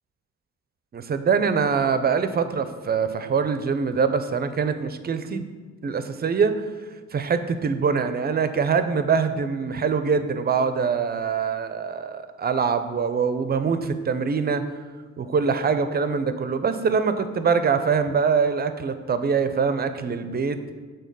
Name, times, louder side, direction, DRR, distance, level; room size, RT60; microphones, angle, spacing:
voice 1, 0.9-5.4 5.8-6.5 7.1-14.6 15.2-20.6, right 5 dB, 35° right, 10 dB, 0.5 m, -24 dB
6.2 x 3.9 x 5.3 m, 1.4 s
cardioid pair, 90°, 30 cm